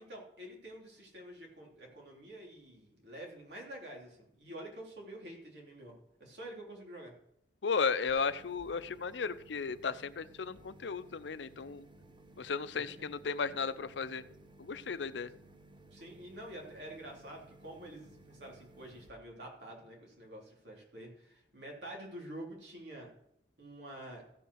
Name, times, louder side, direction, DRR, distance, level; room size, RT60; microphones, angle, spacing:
voice 1, 0.0-7.1 12.7-13.1 15.9-23.1 23.6-24.2, right 1 dB, 70° right, -1 dB, 3.4 m, -48 dB
voice 2, 7.6-11.8 12.4-14.2 14.6-15.3, left 5 dB, 85° left, 14 dB, 0.6 m, -35 dB
sound 1, 8.1-19.1, right 2 dB, 30° right, 1.0 m, -58 dB
15.0 x 5.6 x 6.3 m, 0.79 s
head